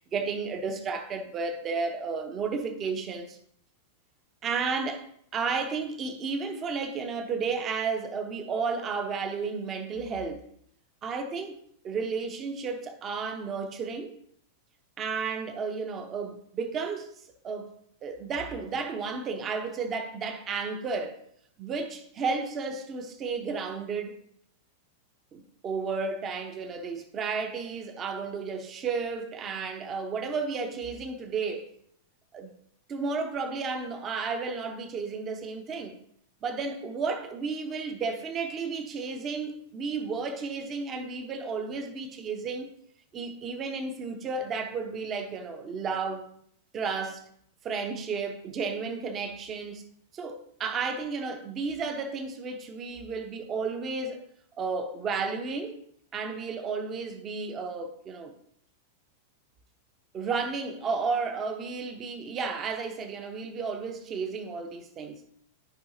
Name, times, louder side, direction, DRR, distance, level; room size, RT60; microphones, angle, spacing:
voice 1, 0.0-3.4 4.4-5.1 5.3-10.4 11.0-14.1 15.0-17.1 17.4-17.7 18.0-21.2 21.6-24.2 25.3-31.7 32.3-32.5 32.9-36.0 36.4-42.7 43.1-46.3 46.7-47.3 47.6-49.8 50.1-54.2 54.6-55.8 56.1-58.3 60.1-65.2, right 4 dB, 25° right, 0.9 m, -32 dB
12.0 x 5.5 x 2.7 m
figure-of-eight pair, 95°, 0 cm